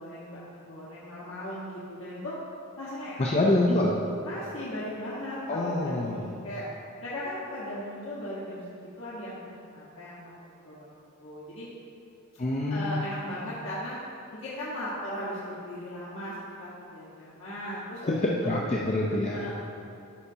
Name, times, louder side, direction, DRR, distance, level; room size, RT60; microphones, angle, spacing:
voice 1, 0.0-2.4 2.8-3.3 4.2-6.7 7.0-10.8 11.2-11.7 12.7-14.0 14.3-18.1 18.4-18.5 19.3-19.5, left 1 dB, 80° left, -10 dB, 1.4 m, -37 dB
voice 2, 3.2-4.0 5.5-6.3 12.4-13.0 18.0-19.4, left 1 dB, 30° left, -2 dB, 0.5 m, -26 dB
11.5 x 5.7 x 2.7 m, 2.7 s
head